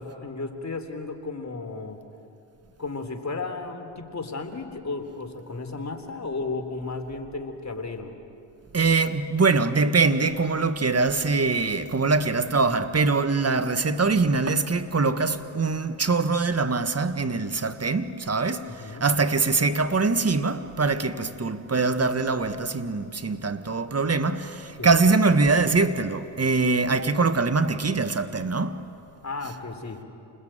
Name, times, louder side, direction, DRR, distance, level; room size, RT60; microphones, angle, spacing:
voice 1, 0.0-2.0 2.8-8.1 18.6-19.1 24.8-24.9 29.2-30.0, left 3 dB, 35° left, 3.7 m, -34 dB
voice 2, 8.7-18.6 19.0-24.5 24.8-28.7, right 4 dB, 30° right, 1.7 m, -23 dB
28.5 x 21.0 x 9.1 m
supercardioid pair, 50°, 48 cm